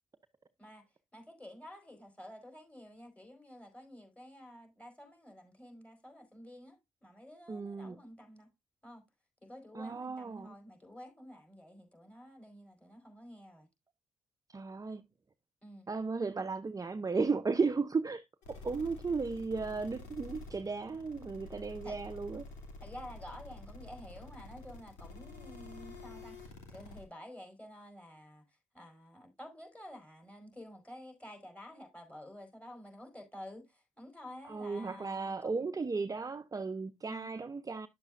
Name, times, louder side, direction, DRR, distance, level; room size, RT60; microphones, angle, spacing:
voice 1, 0.6-8.5 8.8-9.0 9.4-13.7 15.6-15.9 21.8-22.0 22.8-28.5 28.7-35.7 37.0-37.3, left 1 dB, 10° left, 4.2 m, -51 dB
voice 2, 7.5-8.0 9.7-10.5 14.5-15.0 15.9-22.4 34.4-37.9, right 4 dB, 30° right, 0.7 m, -35 dB
sound 1, 18.4-27.0, left 2 dB, 90° left, 2.5 m, -49 dB
10.0 x 7.1 x 2.5 m
supercardioid pair, 50°, 13 cm